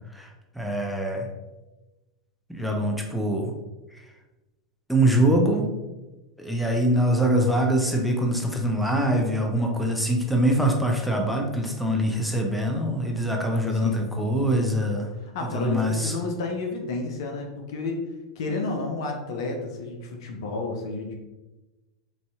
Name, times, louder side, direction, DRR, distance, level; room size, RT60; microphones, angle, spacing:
voice 1, 0.5-1.3 2.5-3.5 4.9-5.7 6.4-15.1 15.5-16.1, right 1 dB, ahead, 1 dB, 0.5 m, -23 dB
voice 2, 13.7-14.5 15.2-18.0 18.4-21.1, left 3 dB, 60° left, 3 dB, 0.6 m, -31 dB
4.2 x 2.6 x 2.3 m, 1.1 s
figure-of-eight pair, 90°, 3 cm